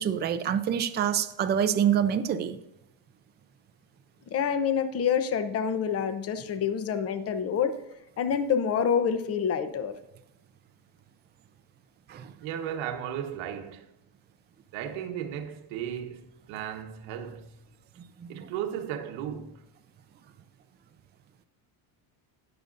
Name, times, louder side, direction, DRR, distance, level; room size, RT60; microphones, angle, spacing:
voice 1, 0.0-2.6 12.1-12.3 18.2-18.5, right 9 dB, 20° right, 0.5 m, -26 dB
voice 2, 4.3-7.8 8.2-9.9, left 7 dB, 30° left, 0.8 m, -27 dB
voice 3, 12.4-13.9 14.7-17.6 18.3-19.6, right 9 dB, 70° right, 1.2 m, -35 dB
19.5 x 6.8 x 2.5 m
cardioid pair, 155°, 49 cm